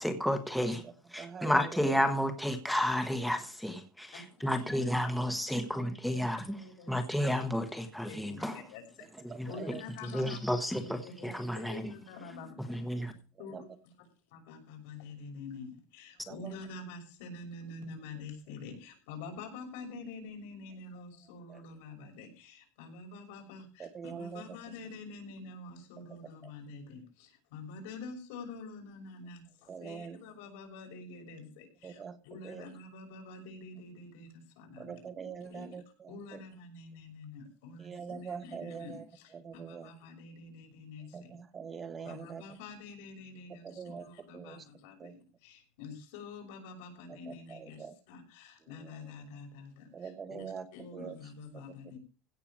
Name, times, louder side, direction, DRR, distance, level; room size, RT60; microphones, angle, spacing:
voice 1, 0.0-0.8 1.1-6.4 6.9-8.6 9.4-9.5 10.1-11.8 12.7-13.1, equal, ahead, 6 dB, 1.3 m, -31 dB
voice 2, 0.8-1.8 9.3-9.8 13.4-13.6 16.3-16.6 21.5-21.6 23.8-24.6 26.1-26.5 29.7-30.2 31.8-32.2 32.4-32.6 34.8-36.4 37.8-39.0 39.3-39.9 41.1-42.4 43.5-44.1 44.3-44.6 45.0-45.1 47.1-47.9 48.8-49.1 49.9-50.7 50.9-51.1 51.5-51.6, right 6 dB, 20° right, 10 dB, 1.2 m, -44 dB
voice 3, 4.1-4.7 5.3-5.7 6.1-7.1 7.6-7.7 8.1-9.0 9.5-12.8 13.0-13.9 14.3-35.0 35.4-35.7 36.1-41.3 42.0-52.0, left 3 dB, 75° left, 3 dB, 6.2 m, -47 dB
16.0 x 6.9 x 6.1 m, 0.34 s
cardioid pair, 170°, 0 cm